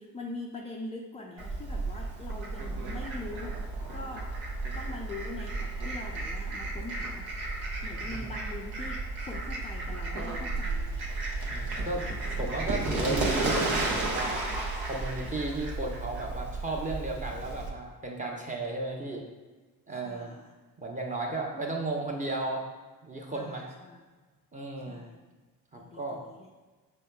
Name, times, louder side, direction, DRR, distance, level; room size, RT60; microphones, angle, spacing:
voice 1, 0.0-4.4 4.7-7.3 7.8-11.3 11.9-12.6 19.9-20.5 23.3-24.0 24.9-25.2 25.7-26.5, left 2 dB, 15° left, -1 dB, 0.4 m, -43 dB
Fowl, 1.4-17.7, right 2 dB, 75° right, 1.1 m, -33 dB
voice 2, 11.5-12.0 12.4-14.4 14.9-19.2 19.9-20.3 20.8-22.7 23.0-23.7 24.5-25.0 25.7-26.2, right 2 dB, 15° right, 0 dB, 0.8 m, -34 dB
5.4 x 3.7 x 2.3 m, 1.3 s
hypercardioid pair, 70°, 47 cm